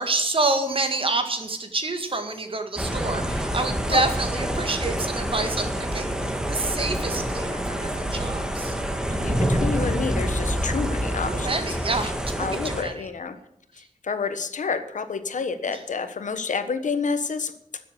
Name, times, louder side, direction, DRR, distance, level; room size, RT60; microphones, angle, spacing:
voice 1, 0.0-8.8 11.3-12.3 12.6-13.1 15.7-15.8, right 3 dB, 45° right, 7 dB, 1.9 m, -28 dB
sound 1, 2.8-12.8, equal, 5° right, 1.5 m, -27 dB
voice 2, 9.1-11.5 12.4-13.3 13.8-17.5, left 5 dB, 85° left, 10 dB, 1.3 m, -29 dB
13.0 x 7.7 x 8.3 m, 0.76 s
wide cardioid pair, 110°, 13 cm